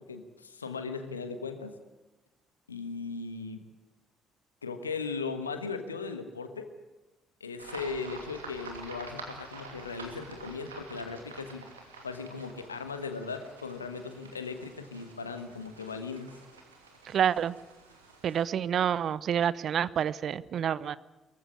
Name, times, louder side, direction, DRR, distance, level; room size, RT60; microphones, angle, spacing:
voice 1, 0.0-1.8 2.7-3.6 4.6-6.7 7.4-16.3, left 4 dB, 85° left, 8 dB, 1.4 m, -38 dB
sound 1, 7.6-18.4, right 3 dB, 85° right, 2.6 m, -48 dB
voice 2, 17.0-17.5 18.2-21.0, right 9 dB, 50° right, 19 dB, 0.7 m, -28 dB
22.5 x 15.0 x 9.8 m, 1.1 s
figure-of-eight pair, 50°, 0 cm